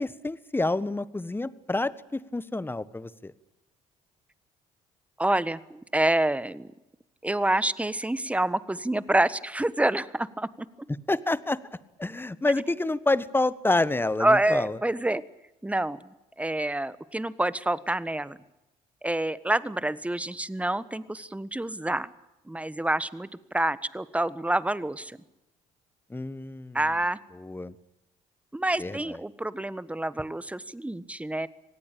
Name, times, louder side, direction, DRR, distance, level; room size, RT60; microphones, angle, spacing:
voice 1, 0.0-3.3 11.1-11.6 12.0-14.8 26.1-26.8 27.4-27.7 28.8-29.2, left 2 dB, 15° left, 17 dB, 1.4 m, -28 dB
voice 2, 5.2-6.7 7.2-10.5 14.2-15.2 15.6-16.0 16.4-18.4 19.0-22.1 22.5-25.2 26.7-27.2 28.5-31.5, right 1 dB, 10° right, 16 dB, 1.4 m, -27 dB
26.0 x 18.0 x 8.6 m, 0.96 s
supercardioid pair, 70°, 15 cm